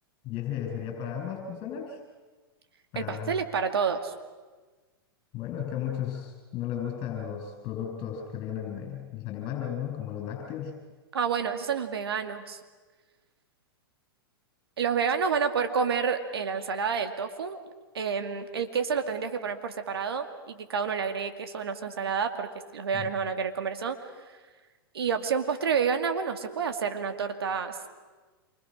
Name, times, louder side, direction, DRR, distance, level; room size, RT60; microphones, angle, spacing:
voice 1, 0.2-2.0 2.9-3.4 5.3-10.8 22.9-23.1, left 9 dB, 40° left, 1 dB, 6.8 m, -34 dB
voice 2, 3.0-4.1 11.1-12.6 14.8-17.6 17.9-24.0 24.9-27.9, right 6 dB, 80° right, 7 dB, 2.4 m, -29 dB
27.5 x 25.0 x 6.5 m, 1.3 s
hypercardioid pair, 115°, 13 cm